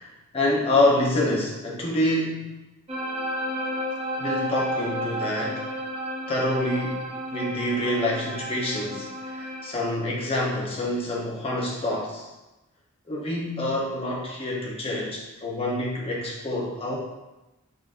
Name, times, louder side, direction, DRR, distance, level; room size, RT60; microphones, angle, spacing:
voice 1, 0.0-2.6 4.2-5.7 6.3-12.3 13.1-17.0, left 1 dB, 25° left, -3 dB, 0.8 m, -27 dB
sound 1, 2.9-9.7, equal, 25° right, 0.7 m, -32 dB
5.0 x 3.7 x 2.5 m, 1.0 s
head